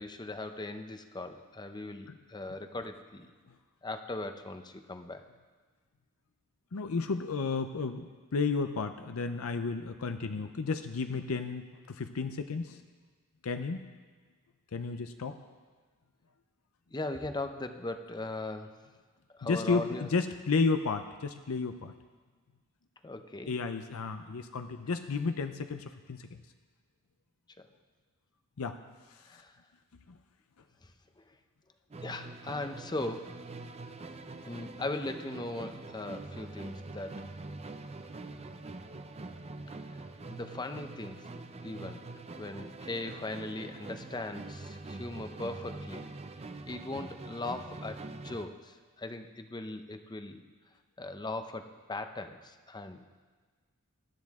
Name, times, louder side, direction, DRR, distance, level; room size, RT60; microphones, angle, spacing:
voice 1, 0.0-3.3 3.8-5.3 16.9-18.7 19.3-20.1 23.0-23.6 27.6-27.7 29.3-29.5 31.2-31.3 32.0-33.3 34.4-37.3 39.9-40.0 40.3-41.2 41.6-42.0 42.4-46.1 46.7-50.4 51.0-53.2, left 2 dB, 20° left, 8 dB, 0.7 m, -39 dB
voice 2, 6.7-8.1 8.3-12.8 13.4-13.8 14.7-15.3 19.4-21.9 23.5-26.4 28.6-28.8, left 4 dB, 70° left, 8 dB, 0.6 m, -32 dB
Musical instrument, 31.9-48.6, right 2 dB, 30° right, 0.6 m, -44 dB
19.5 x 12.5 x 3.6 m, 1.4 s
head